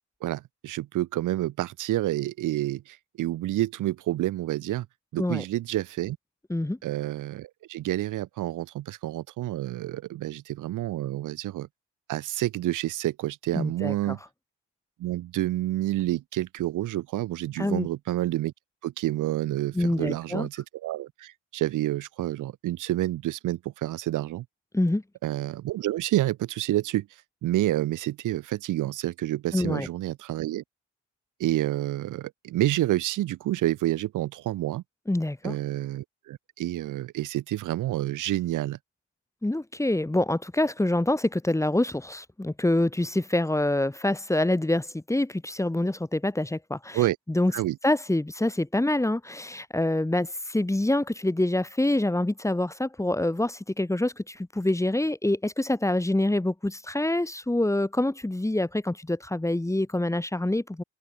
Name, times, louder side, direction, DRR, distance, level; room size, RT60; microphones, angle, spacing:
voice 1, 0.2-4.9 5.1-6.2 6.8-11.7 12.1-14.2 15.0-18.5 18.8-24.4 25.2-27.1 27.4-30.6 31.4-34.8 35.4-38.8 46.9-47.2 47.5-47.8, right 15 dB, 85° right, 4.5 m, -29 dB
voice 2, 13.5-14.1 17.6-17.9 19.7-20.5 24.7-25.0 29.5-29.9 35.1-35.6 39.4-47.0 47.3-47.5 47.8-60.8, left 1 dB, 10° left, 3.3 m, -26 dB
open air
cardioid pair, 90°, 30 cm